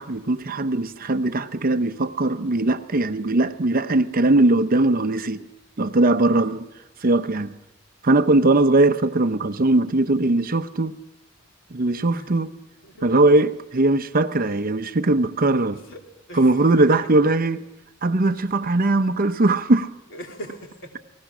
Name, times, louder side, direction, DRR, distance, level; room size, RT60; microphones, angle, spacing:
voice 1, 0.0-5.4 5.8-6.7 7.0-7.5 8.0-11.0 11.7-12.5 13.0-15.8 16.3-17.6 18.0-19.9, right 2 dB, 45° right, 0.8 m, -20 dB
voice 2, 6.2-6.6 12.1-12.3 12.8-13.3 15.8-16.0 16.3-17.5 20.1-21.0, equal, 65° left, 3.4 m, -41 dB
29.0 x 19.5 x 6.1 m
head